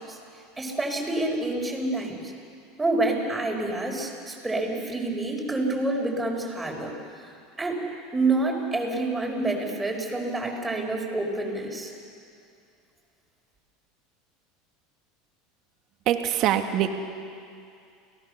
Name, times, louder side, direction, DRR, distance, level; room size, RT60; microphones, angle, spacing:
voice 1, 0.6-2.2 2.8-6.9 7.6-7.8 8.1-11.9, right 2 dB, 10° right, 0 dB, 5.5 m, -27 dB
voice 2, 16.1-16.9, right 11 dB, 55° right, 6 dB, 1.9 m, -23 dB
29.0 x 18.5 x 6.9 m, 2.5 s
supercardioid pair, 110°, 0 cm